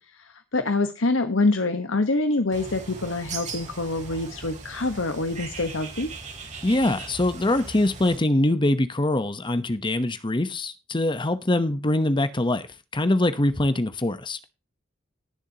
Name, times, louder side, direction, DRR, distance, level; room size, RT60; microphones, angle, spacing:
voice 1, 0.0-6.1, left 2 dB, 85° left, 1.3 m, -26 dB
Bird, 2.5-8.2, right 4 dB, 40° right, 3.8 m, -39 dB
voice 2, 6.6-12.7 12.9-14.4, left 1 dB, 25° left, 1.0 m, -23 dB
20.0 x 7.2 x 2.9 m
head